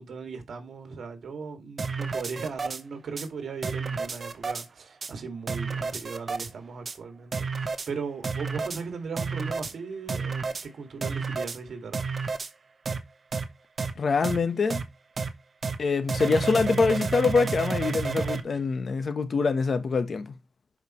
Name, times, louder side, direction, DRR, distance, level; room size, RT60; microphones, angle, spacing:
voice 1, 0.0-12.4, right 5 dB, 75° right, 2.2 m, -38 dB
sound 1, 1.8-2.8 3.2-3.3 3.6-4.7 5.0-5.1 5.5-6.5 6.9-7.0 7.3-7.9 8.2-8.8 9.2-9.7 10.1-10.7 11.0-11.6 11.9-12.5 12.9-13.0 13.3-13.5 13.8-13.9 14.2-14.4 14.7-14.8 15.2-15.3 15.6-15.8 16.1-18.4, right 4 dB, 50° right, 1.0 m, -30 dB
voice 2, 14.0-14.8 15.8-20.3, left 4 dB, 60° left, 1.1 m, -25 dB
11.0 x 5.0 x 3.1 m
cardioid pair, 80°, 0 cm